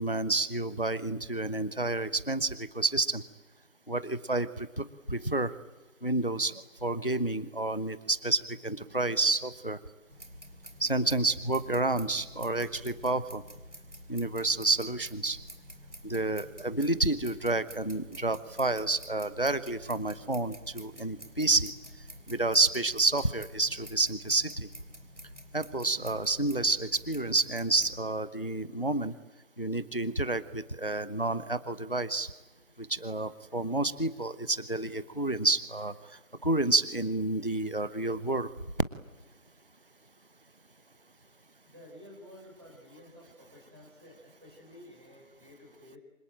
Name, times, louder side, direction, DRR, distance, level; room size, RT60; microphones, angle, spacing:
voice 1, 0.0-3.2 3.9-5.5 6.0-6.5 6.8-9.8 10.8-13.4 14.1-15.4 16.0-21.7 22.3-24.7 25.5-29.1 29.6-32.3 32.8-35.9 36.4-38.5, right 2 dB, 40° left, 14 dB, 0.9 m, -29 dB
sound 1, 10.1-28.0, equal, 55° right, 3.5 m, -49 dB
voice 2, 41.6-46.0, left 1 dB, 20° right, -2 dB, 4.7 m, -52 dB
26.0 x 26.0 x 8.9 m, 1.1 s
figure-of-eight pair, 180°, 43 cm